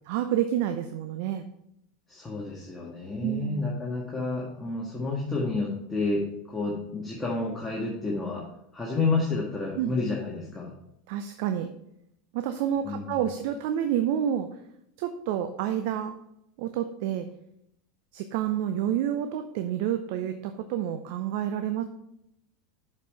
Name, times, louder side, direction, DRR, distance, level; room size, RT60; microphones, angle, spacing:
voice 1, 0.1-1.5 3.2-3.6 9.8-10.0 11.1-11.7 12.3-14.5 15.0-16.1 16.6-17.3 18.1-21.8, right 10 dB, 60° right, 8 dB, 0.5 m, -29 dB
voice 2, 2.1-8.4 8.7-10.7 12.8-13.2, left 3 dB, 15° left, -4 dB, 1.7 m, -30 dB
6.8 x 4.8 x 5.5 m, 0.78 s
hypercardioid pair, 90°, 0 cm